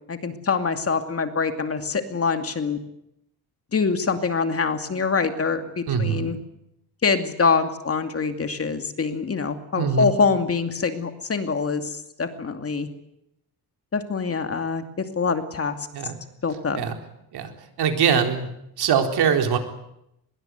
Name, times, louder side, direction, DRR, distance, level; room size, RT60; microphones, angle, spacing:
voice 1, 0.1-2.8 3.7-6.4 7.0-12.9 13.9-15.8 16.4-16.8, left 5 dB, 40° left, 7 dB, 2.5 m, -24 dB
voice 2, 5.9-6.3 9.8-10.1 15.9-16.2 16.7-16.9 17.3-17.5 17.8-18.5 18.8-19.6, right 7 dB, 90° right, 5 dB, 4.2 m, -22 dB
24.5 x 21.5 x 9.4 m, 0.81 s
cardioid pair, 120°, 38 cm